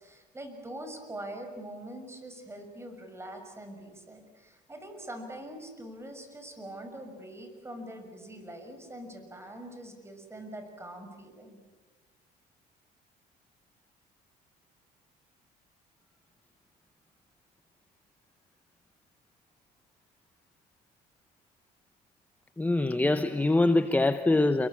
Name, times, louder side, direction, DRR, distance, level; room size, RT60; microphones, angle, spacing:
voice 1, 0.0-11.6, right 1 dB, 15° right, 6.2 m, -43 dB
voice 2, 22.6-24.7, left 2 dB, 10° left, 0.9 m, -24 dB
28.5 x 22.5 x 8.6 m
cardioid pair, 110°, 17 cm